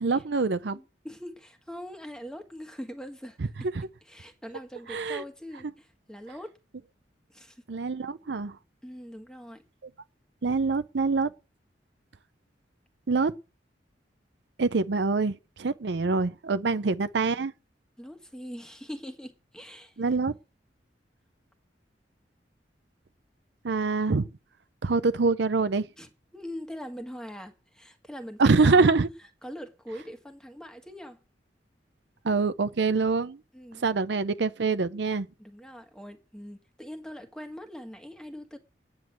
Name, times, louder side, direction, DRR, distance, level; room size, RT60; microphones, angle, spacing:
voice 1, 0.0-0.8 3.8-3.9 4.9-5.2 7.7-8.5 10.4-11.3 13.1-13.3 14.6-17.5 20.0-20.3 23.6-24.2 24.8-25.9 28.4-29.1 32.2-33.4 33.8-35.3, right 4 dB, 75° right, 0.6 m, -25 dB
voice 2, 0.7-3.7 4.0-6.5 7.3-7.6 8.8-9.6 16.7-16.8 18.0-20.0 26.0-29.0 29.4-31.2 33.5-33.9 35.4-38.6, equal, 5° left, 1.6 m, -42 dB
9.5 x 7.8 x 7.7 m
head